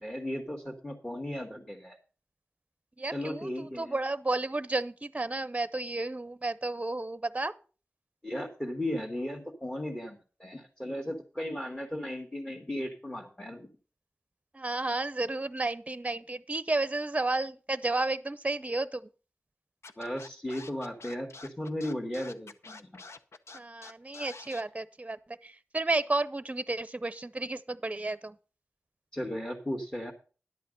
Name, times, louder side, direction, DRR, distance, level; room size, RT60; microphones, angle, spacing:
voice 1, 0.0-2.0 3.1-4.0 8.2-13.7 20.0-22.9 29.1-30.1, left 1 dB, 15° left, 1.9 m, -36 dB
voice 2, 3.0-7.5 14.5-19.0 23.5-25.2 25.4-28.4, right 2 dB, 30° right, 0.7 m, -32 dB
Scratching (performance technique), 19.8-24.6, left 3 dB, 90° left, 0.7 m, -47 dB
11.0 x 8.2 x 5.2 m
wide cardioid pair, 55°, 5 cm